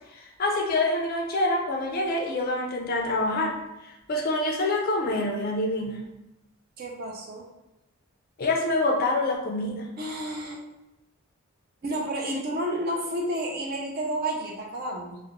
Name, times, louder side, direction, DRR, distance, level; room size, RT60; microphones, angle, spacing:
voice 1, 0.1-3.6 3.8-6.0 8.4-9.9 12.3-12.4, left 2 dB, 40° left, 1 dB, 0.4 m, -26 dB
voice 2, 6.8-7.5 10.0-10.6 11.8-15.2, right 1 dB, 40° right, 0 dB, 0.4 m, -31 dB
2.4 x 2.0 x 2.9 m, 0.95 s
head